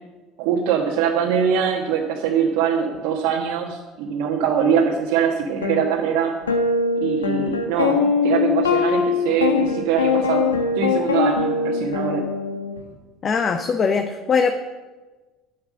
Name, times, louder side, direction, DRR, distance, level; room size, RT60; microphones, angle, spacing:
voice 1, 0.4-6.3 7.0-10.5 10.7-12.2, right 7 dB, 65° right, -2 dB, 1.4 m, -22 dB
sound 1, 5.6-5.8 6.5-12.8, left 5 dB, 90° left, 1.2 m, -21 dB
voice 2, 13.2-14.5, left 5 dB, 40° left, 6 dB, 1.0 m, -21 dB
9.8 x 9.4 x 6.3 m, 1.2 s
hypercardioid pair, 65°, 0 cm